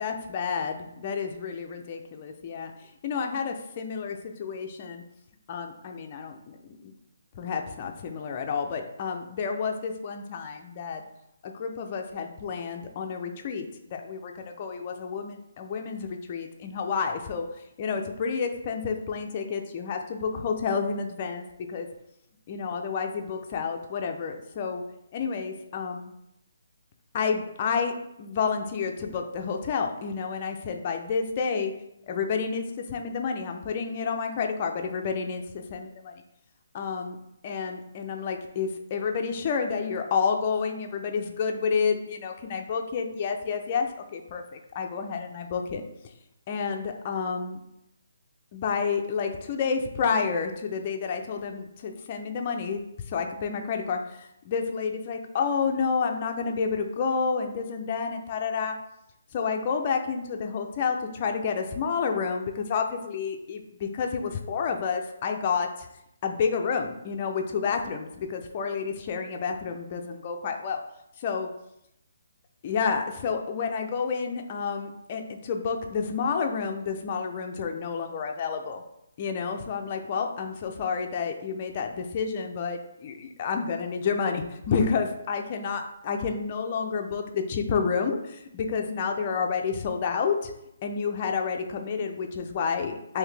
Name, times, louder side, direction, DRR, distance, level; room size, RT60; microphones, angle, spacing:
voice 1, 0.0-5.0 5.5-6.9 7.3-11.0 11.4-17.5 17.8-21.9 22.5-24.8 25.1-26.1 27.1-27.9 28.2-31.7 32.1-36.2 36.7-37.2 37.4-45.8 46.5-47.6 48.5-58.8 59.3-65.9 66.2-70.8 71.2-71.5 72.6-78.8 79.2-90.5 90.8-93.2, left 5 dB, 35° left, 4 dB, 0.4 m, -30 dB
3.8 x 2.7 x 3.3 m, 0.82 s
hypercardioid pair, 160°, 0 cm